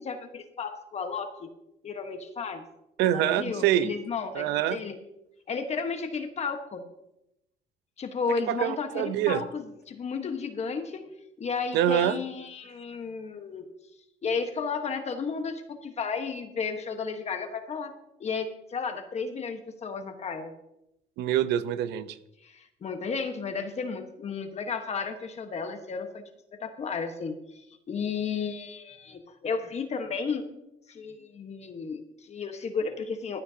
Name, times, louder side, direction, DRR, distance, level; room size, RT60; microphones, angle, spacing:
voice 1, 0.0-1.5 1.8-2.6 3.1-4.9 5.5-6.8 8.0-11.1 11.4-13.6 14.2-17.9 18.2-20.5 22.4-26.2 26.6-30.5 30.9-33.4, left 5 dB, 40° left, 6 dB, 1.3 m, -33 dB
voice 2, 3.0-3.9 4.3-4.8 8.5-9.4 11.7-12.2 21.2-22.2, right 11 dB, 85° right, 13 dB, 0.8 m, -25 dB
15.0 x 12.5 x 2.8 m, 0.84 s
cardioid pair, 110°, 17 cm